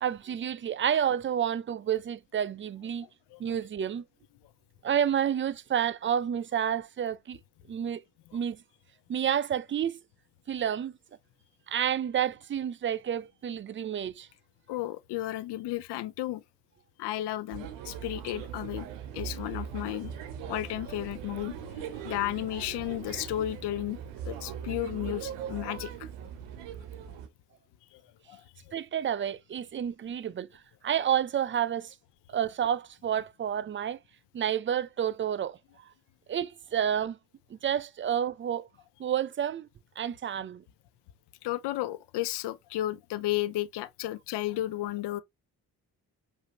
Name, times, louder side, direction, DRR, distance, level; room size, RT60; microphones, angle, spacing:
voice 1, 0.0-3.1 3.4-4.0 4.8-7.4 7.7-8.0 8.3-8.6 9.1-10.0 10.5-10.9 11.7-14.3 28.7-30.5 30.8-31.9 32.3-34.0 34.3-35.6 36.3-37.2 37.5-38.7 39.0-39.7 40.0-40.6, right 9 dB, 30° right, 0.4 m, -29 dB
voice 2, 14.7-16.4 17.0-18.9 19.1-20.1 20.5-21.6 22.0-24.0 24.2-26.1 27.9-28.0 28.3-28.4 41.4-45.2, left 15 dB, 70° left, 0.5 m, -33 dB
sound 1, 17.5-27.3, right 8 dB, 90° right, 0.7 m, -40 dB
4.9 x 2.7 x 2.8 m
hypercardioid pair, 40°, 42 cm